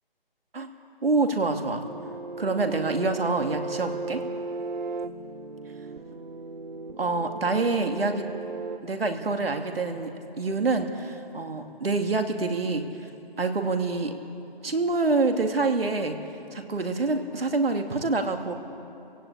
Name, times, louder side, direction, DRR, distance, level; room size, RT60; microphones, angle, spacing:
voice 1, 1.0-1.9 2.4-4.2 7.0-8.3 8.8-12.9 13.4-14.2 14.6-16.2 16.5-18.5, right 3 dB, 75° right, 5 dB, 2.6 m, -26 dB
sound 1, 1.8-8.8, right 3 dB, 50° right, 1.1 m, -36 dB
27.0 x 17.0 x 8.6 m, 2.8 s
figure-of-eight pair, 165°, 30 cm